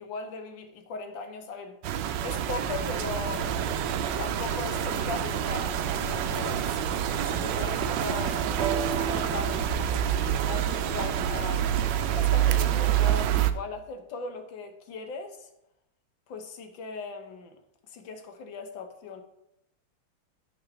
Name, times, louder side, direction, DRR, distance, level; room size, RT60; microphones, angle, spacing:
voice 1, 0.0-3.5 4.2-6.8 7.2-11.7 12.1-15.5 16.3-17.6 17.9-19.2, left 4 dB, 80° left, 6 dB, 1.7 m, -38 dB
sound 1, 1.8-13.5, right 10 dB, 75° right, 1.2 m, -27 dB
sound 2, 2.6-12.3, left 1 dB, 65° left, 1.6 m, -41 dB
sound 3, 8.6-12.4 13.3-13.4, right 7 dB, 55° right, 0.7 m, -37 dB
9.4 x 3.9 x 6.0 m, 0.83 s
omnidirectional pair, 2.1 m